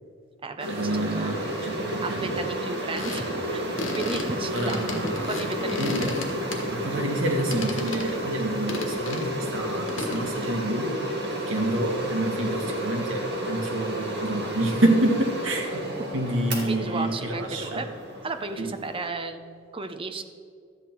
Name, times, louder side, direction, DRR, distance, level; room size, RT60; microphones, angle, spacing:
sound 1, 0.6-19.1, right 1 dB, 60° right, 1.8 m, -32 dB
voice 1, 0.7-2.3 4.5-5.3 5.8-6.2 6.7-11.1 11.5-15.9 16.1-17.8 18.6-18.7, right 1 dB, 80° right, 2 dB, 1.6 m, -28 dB
voice 2, 2.0-3.7 4.0-4.8 5.3-5.8 16.6-17.9 18.2-19.4 19.7-20.2, right 3 dB, 25° right, 7 dB, 0.6 m, -33 dB
sound 2, 3.0-7.0 7.3-8.2 8.7-9.3 9.9-10.3, left 2 dB, 70° left, 1.5 m, -33 dB
12.5 x 8.1 x 4.5 m, 2.2 s
head